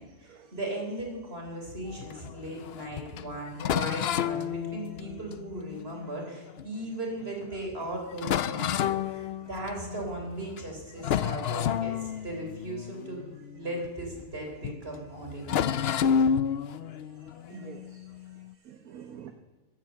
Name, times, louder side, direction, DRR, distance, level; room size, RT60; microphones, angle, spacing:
voice 1, 0.0-13.3 13.5-15.8, right 1 dB, 35° right, 1 dB, 3.8 m, -37 dB
sound 1, 1.9-6.8 7.4-7.5 7.8-7.9 8.2-10.1 10.5-10.7 11.0-14.4 14.6-14.8 15.4-18.5, left 8 dB, 75° left, 0.5 m, -31 dB
voice 2, 17.2-19.3, right 9 dB, 60° right, 6 dB, 1.4 m, -48 dB
15.0 x 9.8 x 7.5 m, 1.3 s
omnidirectional pair, 1.7 m